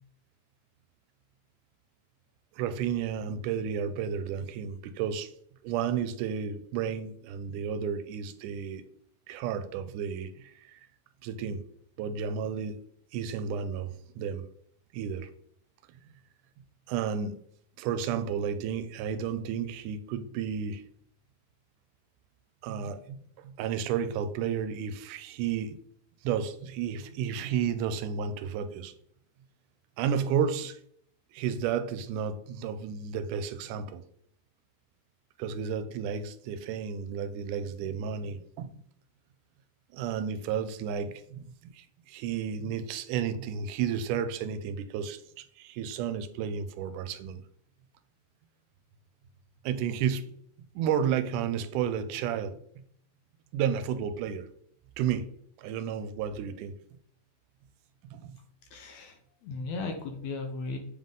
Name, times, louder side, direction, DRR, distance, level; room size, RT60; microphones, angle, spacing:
voice 1, 2.5-5.3 5.6-8.9 9.3-10.8 11.2-11.6 12.0-12.8 13.1-14.5 14.9-15.3 16.9-17.4 17.8-20.8 22.6-25.8 26.2-28.9 30.0-30.8 31.3-34.0 35.4-38.7 39.9-47.4 49.6-50.3 50.8-52.6 53.5-54.5 55.0-55.3 55.6-56.7 58.1-58.4, right 7 dB, 85° right, 2.0 m, -32 dB
voice 2, 58.7-60.8, left 3 dB, 70° left, 1.9 m, -36 dB
7.4 x 3.8 x 3.6 m
omnidirectional pair, 3.6 m